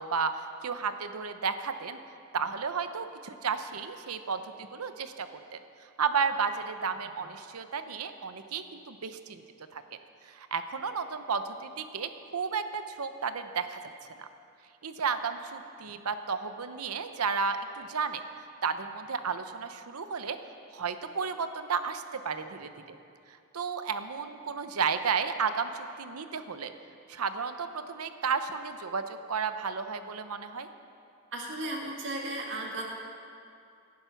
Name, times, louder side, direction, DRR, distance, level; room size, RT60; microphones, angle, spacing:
voice 1, 0.0-2.0 2.3-5.6 6.0-9.4 9.7-9.8 10.2-13.8 14.2-14.3 14.8-18.2 18.6-20.4 20.7-23.0 23.3-26.7 27.1-30.7, right 5 dB, 90° right, 9 dB, 0.8 m, -33 dB
voice 2, 31.3-32.9, right 2 dB, 60° right, 0 dB, 1.9 m, -35 dB
18.0 x 10.5 x 5.8 m, 2.5 s
head